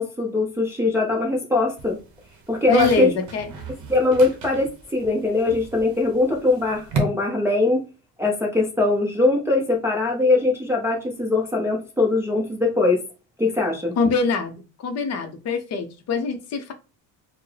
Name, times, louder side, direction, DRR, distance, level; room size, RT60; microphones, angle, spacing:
voice 1, 0.0-2.0 2.5-3.1 3.9-7.8 8.2-13.0 13.4-13.9, left 2 dB, 5° right, 0.4 m, -21 dB
sound 1, 1.8-7.0, right 4 dB, 45° right, 0.9 m, -36 dB
voice 2, 2.7-3.5 14.0-16.7, left 4 dB, 40° left, 0.5 m, -24 dB
4.4 x 2.0 x 3.2 m
cardioid pair, 165°, 40 cm